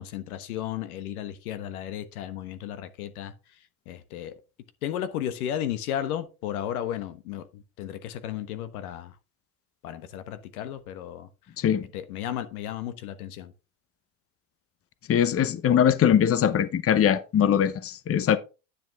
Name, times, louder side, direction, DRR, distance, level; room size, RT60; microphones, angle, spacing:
voice 1, 0.0-3.3 3.9-4.4 4.8-9.1 9.8-11.3 11.9-13.5, left 11 dB, 85° left, 1.3 m, -34 dB
voice 2, 15.1-18.4, left 9 dB, 35° left, 0.9 m, -21 dB
10.0 x 6.4 x 3.5 m
supercardioid pair, 90°, 42 cm